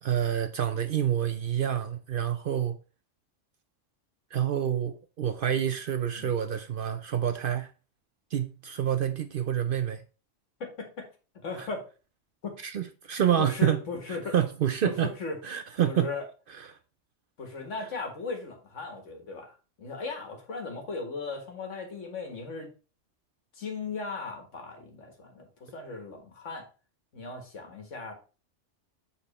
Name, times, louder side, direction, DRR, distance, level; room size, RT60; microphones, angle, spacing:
voice 1, 0.0-2.8 4.3-7.7 8.3-10.0 11.6-11.7 12.6-13.8 14.1-15.1 15.4-16.1 16.6-16.8, right 10 dB, 60° right, 0.6 m, -28 dB
voice 2, 10.6-11.1 11.4-11.9 12.4-12.6 13.4-14.4 14.8-14.9 15.2-15.4 15.8-16.2 17.4-22.7 23.5-26.7 27.1-28.1, left 4 dB, 75° left, 1.9 m, -37 dB
7.1 x 4.1 x 4.1 m
omnidirectional pair, 1.3 m